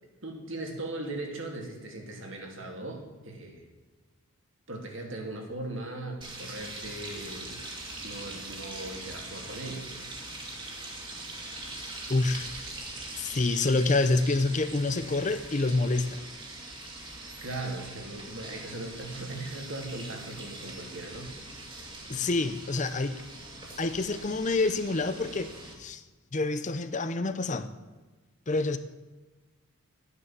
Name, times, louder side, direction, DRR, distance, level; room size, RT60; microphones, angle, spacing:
voice 1, 0.2-3.7 4.7-7.6 8.0-9.9 17.4-21.3 21.7-21.9, right 2 dB, 55° right, 2 dB, 2.8 m, -39 dB
sound 1, 6.2-25.7, right 2 dB, 20° right, 2.3 m, -42 dB
voice 2, 12.1-12.5 13.2-16.2 22.1-23.2 23.8-25.5 25.8-26.0 26.3-27.7 28.5-28.8, left 3 dB, 35° left, 11 dB, 0.6 m, -27 dB
12.5 x 9.8 x 7.4 m, 1.2 s
head